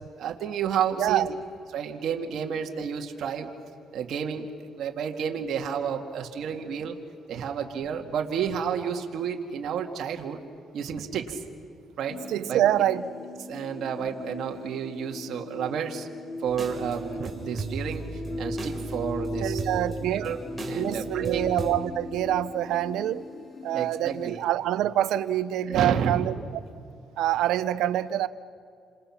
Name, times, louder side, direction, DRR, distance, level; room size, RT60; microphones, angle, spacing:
voice 1, 0.2-1.3 1.7-3.5 3.9-4.5 4.8-7.0 7.3-10.4 10.7-11.4 12.0-12.2 12.5-12.8 13.5-16.1 16.4-18.0 18.4-19.6 20.0-20.4 20.7-21.4 23.7-24.4 25.7-26.3, right 7 dB, 70° right, 2 dB, 2.1 m, -30 dB
voice 2, 1.0-1.4 12.3-13.0 19.4-20.3 20.8-23.2 23.6-26.3 27.2-28.3, right 12 dB, 85° right, 15 dB, 0.8 m, -26 dB
sound 1, 12.1-24.4, left 2 dB, 40° left, 1.4 m, -39 dB
sound 2, 16.5-21.7, right 3 dB, 20° right, 4.5 m, -36 dB
29.0 x 26.5 x 5.9 m, 2.4 s
cardioid pair, 90°, 0 cm